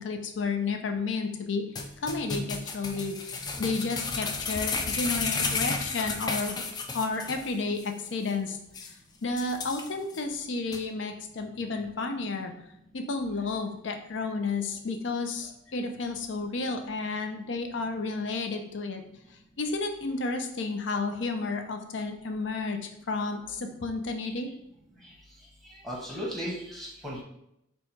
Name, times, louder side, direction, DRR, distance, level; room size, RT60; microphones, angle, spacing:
voice 1, 0.0-1.7 2.0-6.6 6.9-8.6 9.2-12.5 12.9-19.0 19.6-24.5, left 3 dB, 75° left, 6 dB, 0.5 m, -32 dB
sound 1, 1.8-7.5 7.8-7.9 8.3-8.4 8.7-8.9 9.4-10.2 10.7-10.8, left 4 dB, 20° left, 0.3 m, -32 dB
voice 2, 25.8-27.2, equal, ahead, -3 dB, 0.9 m, -35 dB
4.1 x 2.3 x 4.4 m, 0.79 s
head